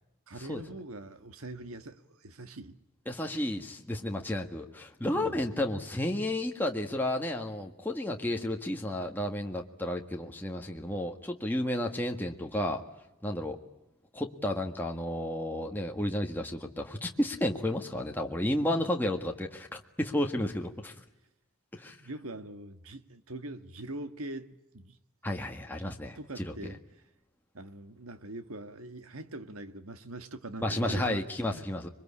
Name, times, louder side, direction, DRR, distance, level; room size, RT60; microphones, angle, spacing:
voice 1, 0.3-2.8 5.1-5.4 22.0-24.5 24.7-25.0 25.8-27.0 27.5-31.9, right 2 dB, 75° right, 1.7 m, -43 dB
voice 2, 3.1-12.8 13.2-13.6 14.1-20.9 21.7-22.0 25.2-26.5 30.6-31.9, left 1 dB, 10° left, 1.6 m, -32 dB
26.5 x 23.0 x 8.6 m
head